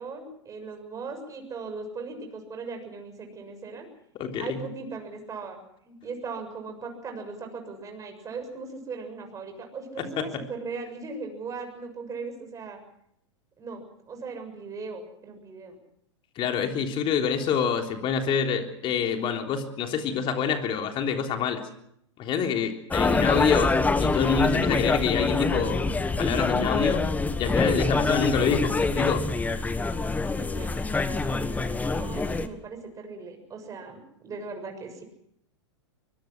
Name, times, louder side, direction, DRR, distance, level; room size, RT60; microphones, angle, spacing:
voice 1, 0.0-3.9 4.4-5.6 5.8-12.8 13.6-15.8 30.4-30.8 31.5-35.0, right 4 dB, 20° right, 5 dB, 6.8 m, -38 dB
voice 2, 4.1-4.6 10.0-10.4 16.4-21.7 22.2-27.0 27.4-29.3, left 7 dB, 35° left, 4 dB, 3.5 m, -27 dB
sound 1, 22.9-32.5, left 3 dB, 10° left, 1.5 m, -25 dB
23.5 x 22.0 x 6.1 m, 0.73 s
hypercardioid pair, 105°, 15 cm